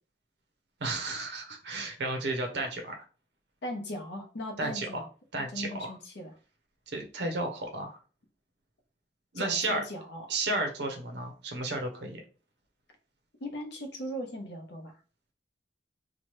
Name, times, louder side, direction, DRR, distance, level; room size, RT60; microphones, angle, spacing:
voice 1, 0.8-3.0 4.6-5.0 5.3-5.9 6.9-8.0 9.3-9.8 10.3-12.2, right 2 dB, 60° right, 3 dB, 0.6 m, -33 dB
voice 2, 3.6-5.1 5.5-6.3 9.3-10.3 13.4-15.0, equal, 60° left, 2 dB, 0.7 m, -38 dB
2.8 x 2.1 x 3.0 m, 0.37 s
head